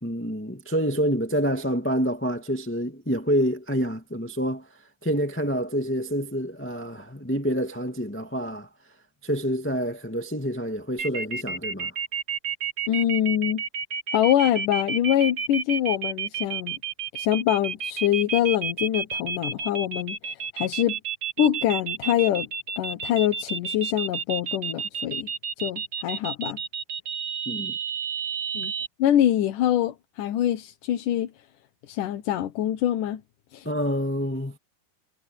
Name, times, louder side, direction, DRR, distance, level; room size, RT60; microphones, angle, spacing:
voice 1, 0.0-4.6 5.0-8.7 9.2-11.9 27.4-27.8 33.6-34.6, equal, 5° left, 1.0 m, -27 dB
sound 1, 11.0-28.9, right 6 dB, 50° right, 1.4 m, -30 dB
voice 2, 12.9-13.6 14.1-16.7 17.1-21.0 21.4-22.5 22.8-25.3 25.6-26.6 28.5-28.7 29.0-31.3 31.9-33.2 33.5-33.7, left 11 dB, 65° left, 2.5 m, -24 dB
omnidirectional pair, 4.5 m